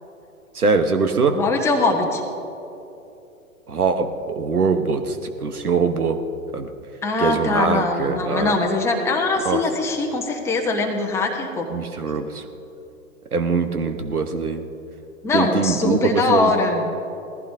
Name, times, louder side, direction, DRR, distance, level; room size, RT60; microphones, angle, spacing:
voice 1, 0.5-1.4 3.7-5.2 5.4-6.2 6.5-6.7 7.2-8.6 9.4-9.6 11.7-12.4 13.3-14.6 15.3-16.5, right 4 dB, 80° right, 8 dB, 1.2 m, -22 dB
voice 2, 1.3-2.2 7.0-11.7 15.2-16.9, left 3 dB, 5° left, 1 dB, 0.9 m, -22 dB
19.0 x 15.0 x 2.7 m, 2.8 s
figure-of-eight pair, 115°, 44 cm